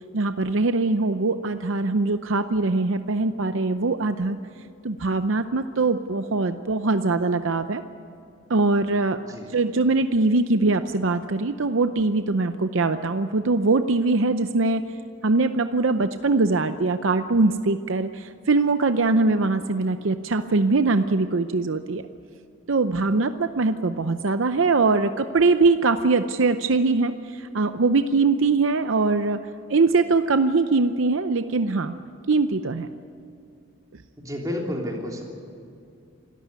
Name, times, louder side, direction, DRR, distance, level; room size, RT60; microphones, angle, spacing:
voice 1, 0.1-4.4 4.8-7.8 8.5-9.2 9.5-14.8 15.2-22.0 22.7-29.4 29.7-32.0 32.3-32.9, right 3 dB, 70° right, 9 dB, 0.7 m, -22 dB
voice 2, 34.2-35.2, left 1 dB, 15° right, -1 dB, 3.2 m, -30 dB
26.0 x 14.0 x 9.4 m, 2.5 s
head